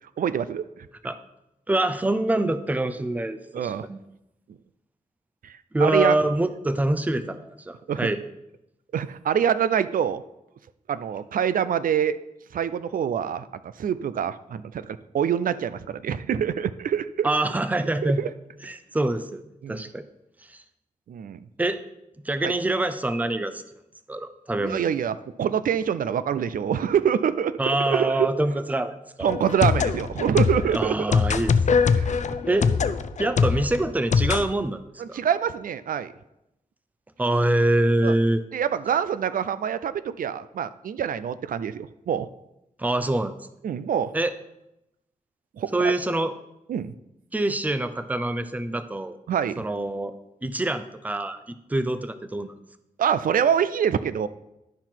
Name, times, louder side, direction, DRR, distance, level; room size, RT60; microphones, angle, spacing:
voice 1, 0.2-0.7 3.5-3.9 5.4-6.2 7.9-8.1 8.9-10.2 10.9-12.2 12.5-13.5 13.8-17.3 18.0-18.3 19.6-19.8 21.1-21.4 22.4-22.5 24.6-28.3 29.2-31.0 32.0-32.2 35.0-36.1 38.0-38.1 38.5-42.3 43.6-44.1 45.6-45.9 46.7-46.9 49.3-49.6 53.0-54.3, right 8 dB, 80° right, 14 dB, 0.4 m, -25 dB
voice 2, 1.7-4.0 5.7-8.2 17.2-18.2 18.6-19.4 19.7-20.0 20.5-20.6 21.6-21.8 22.3-23.6 24.1-24.8 27.6-29.3 30.7-31.5 32.5-32.7 33.2-34.8 35.1-35.2 37.2-38.4 42.8-43.3 44.1-44.3 45.7-46.3 47.3-49.2 49.6-50.1 50.4-52.5, right 1 dB, 10° right, 11 dB, 0.5 m, -25 dB
sound 1, 29.3-34.4, left 5 dB, 60° left, 0.5 m, -23 dB
11.5 x 5.8 x 4.5 m, 0.88 s
wide cardioid pair, 135°, 14 cm